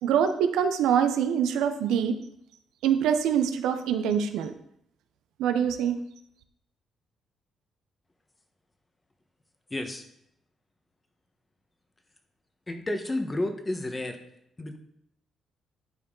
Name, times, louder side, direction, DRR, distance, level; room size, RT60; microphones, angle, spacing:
voice 1, 0.0-2.2 2.8-4.5 5.4-6.0, right 8 dB, 90° right, 8 dB, 0.6 m, -24 dB
voice 2, 9.7-10.1 12.7-14.2 14.6-14.8, left 1 dB, 20° left, 6 dB, 1.1 m, -31 dB
10.5 x 4.6 x 3.8 m, 0.74 s
cardioid pair, 90°, 0 cm